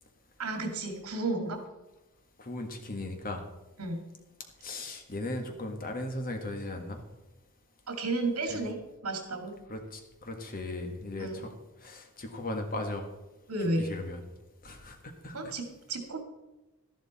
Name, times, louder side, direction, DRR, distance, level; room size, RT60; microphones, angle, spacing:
voice 1, 0.4-1.6 3.8-4.0 7.9-9.5 11.2-11.4 13.5-13.9 15.3-16.2, right 2 dB, 80° right, 4 dB, 2.3 m, -32 dB
voice 2, 2.4-3.4 4.6-7.0 8.5-8.6 9.7-11.5 11.8-13.1 13.8-14.2 14.6-15.5, left 2 dB, 40° left, 4 dB, 1.6 m, -37 dB
12.5 x 11.5 x 4.2 m, 1.0 s
head